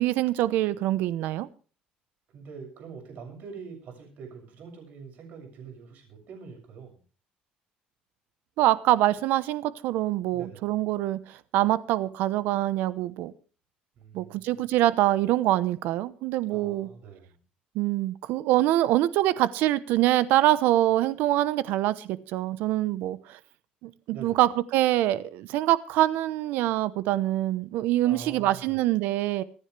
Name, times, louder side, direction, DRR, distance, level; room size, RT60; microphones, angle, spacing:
voice 1, 0.0-1.5 8.6-13.3 14.1-16.9 17.7-23.4 23.8-29.4, right 14 dB, 80° right, 1.0 m, -25 dB
voice 2, 2.3-7.0 10.3-10.7 13.9-14.6 16.5-17.4 24.1-24.4 28.0-28.8, right 6 dB, 55° right, 6.9 m, -44 dB
25.5 x 10.0 x 3.4 m
cardioid pair, 145°, 3 cm